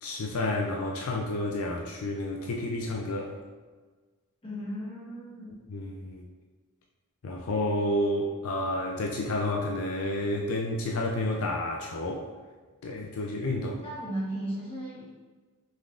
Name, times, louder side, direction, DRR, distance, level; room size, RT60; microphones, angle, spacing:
voice 1, 0.0-3.3 5.7-6.2 7.2-12.3 12.8-13.7, left 1 dB, 70° left, -1 dB, 0.5 m, -30 dB
voice 2, 4.4-5.6 13.6-15.3, right 1 dB, 25° left, -6 dB, 1.2 m, -36 dB
5.3 x 3.6 x 2.4 m, 1.4 s
head